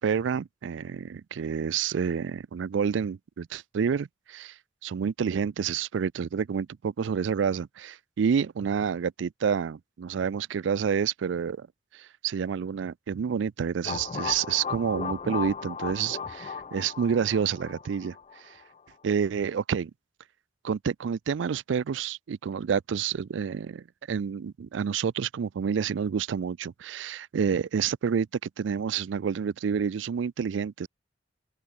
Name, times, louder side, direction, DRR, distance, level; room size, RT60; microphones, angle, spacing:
voice 1, 0.0-4.5 4.8-11.7 11.9-18.2 18.5-18.6 19.0-19.9 20.6-28.3 28.6-30.9, right 7 dB, 85° right, 0.4 m, -29 dB
sound 1, 13.9-18.6, left 6 dB, 35° left, 0.4 m, -36 dB
open air
head